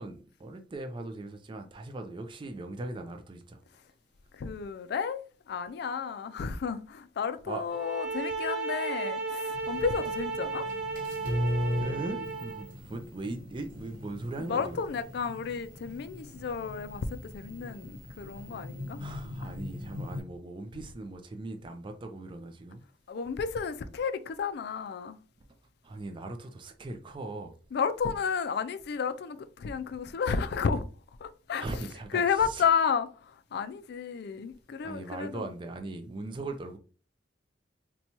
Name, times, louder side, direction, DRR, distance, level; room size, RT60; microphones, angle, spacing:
voice 1, 0.0-3.6 7.5-7.6 11.7-14.8 19.0-22.8 25.8-27.6 31.6-32.6 34.8-36.8, right 2 dB, 30° right, 0.3 m, -39 dB
voice 2, 4.3-5.2 5.5-10.7 14.4-19.0 19.4-19.5 23.1-25.2 27.7-30.9 31.2-31.7 32.1-35.4, left 6 dB, 65° left, 0.4 m, -32 dB
sound 1, 7.7-12.7, right 3 dB, 75° right, 0.8 m, -34 dB
sound 2, 9.5-20.2, left 1 dB, 50° right, 0.9 m, -38 dB
4.1 x 2.2 x 2.8 m
head